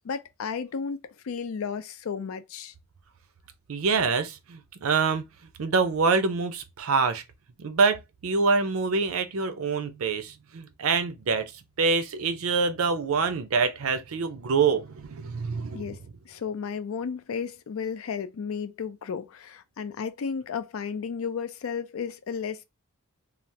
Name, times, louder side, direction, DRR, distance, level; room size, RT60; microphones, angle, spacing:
voice 1, 0.0-2.7 15.7-22.6, left 6 dB, 80° left, 0.4 m, -33 dB
voice 2, 3.7-5.2 5.6-7.2 7.6-11.5 11.8-15.9, right 4 dB, 80° right, 0.5 m, -25 dB
3.2 x 2.0 x 2.7 m
head